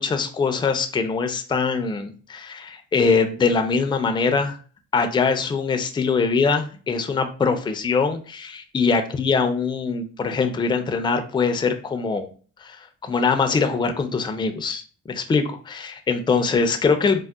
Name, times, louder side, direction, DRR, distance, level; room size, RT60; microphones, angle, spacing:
voice 1, 0.0-4.6 4.9-12.3 12.6-14.8 15.1-17.2, left 5 dB, 15° left, 7 dB, 0.3 m, -22 dB
3.7 x 2.0 x 2.3 m, 0.40 s
cardioid pair, 90°, 30 cm